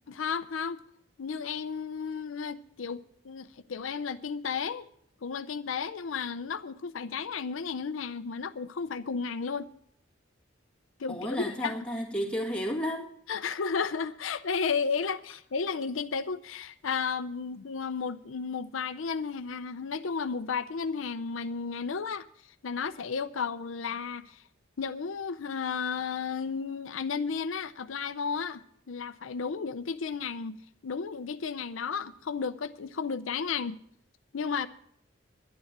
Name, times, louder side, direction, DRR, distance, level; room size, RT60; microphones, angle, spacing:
voice 1, 0.1-0.8 1.2-4.9 5.2-9.7 11.0-11.8 13.3-22.3 22.6-24.4 24.8-33.8 34.3-34.7, left 5 dB, 85° left, 0.6 m, -33 dB
voice 2, 11.1-13.1, equal, 5° left, 1.9 m, -32 dB
11.0 x 10.5 x 7.3 m
head